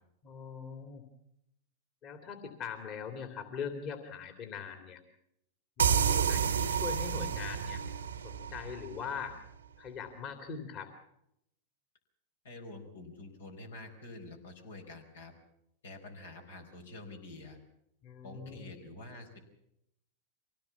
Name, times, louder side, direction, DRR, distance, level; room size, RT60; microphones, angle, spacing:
voice 1, 0.2-1.0 2.0-5.0 5.8-7.8 8.2-9.3 9.8-10.9 18.0-18.7, left 6 dB, 45° left, 6 dB, 2.9 m, -41 dB
sound 1, 5.8-9.3, right 7 dB, 85° right, 1.2 m, -30 dB
voice 2, 12.4-15.3 15.8-17.6 18.2-19.4, left 2 dB, 80° left, 2 dB, 5.0 m, -47 dB
24.0 x 17.5 x 7.2 m, 0.79 s
hypercardioid pair, 105°, 0 cm